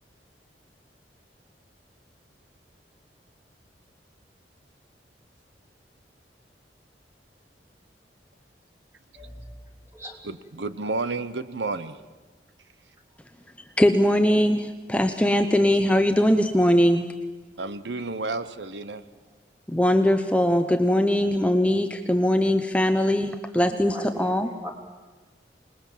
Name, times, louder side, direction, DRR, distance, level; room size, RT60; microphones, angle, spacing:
voice 1, 10.2-12.0 17.6-19.0, right 3 dB, 90° right, 13 dB, 1.0 m, -31 dB
voice 2, 13.8-17.1 19.7-24.5, equal, 5° left, 7 dB, 0.8 m, -21 dB
voice 3, 23.6-24.7, equal, 15° right, 1 dB, 3.4 m, -39 dB
26.5 x 20.0 x 7.4 m, 1.3 s
head